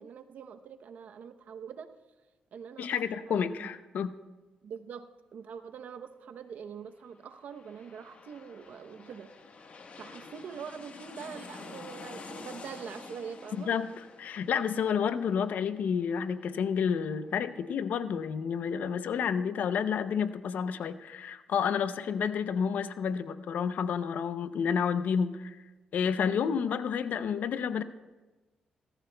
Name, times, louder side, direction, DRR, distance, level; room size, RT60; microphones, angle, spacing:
voice 1, 0.0-1.9 2.5-3.0 3.3-3.7 4.6-9.3 10.0-13.7, right 7 dB, 70° right, 8 dB, 0.8 m, -44 dB
voice 2, 2.8-4.1 13.6-13.9 14.2-25.6 25.9-27.8, left 7 dB, 75° left, 13 dB, 0.6 m, -30 dB
sound 1, 7.2-18.5 18.9-19.0, left 4 dB, 55° left, 1.3 m, -49 dB
18.5 x 13.5 x 2.2 m, 1.2 s
cardioid pair, 75°, 3 cm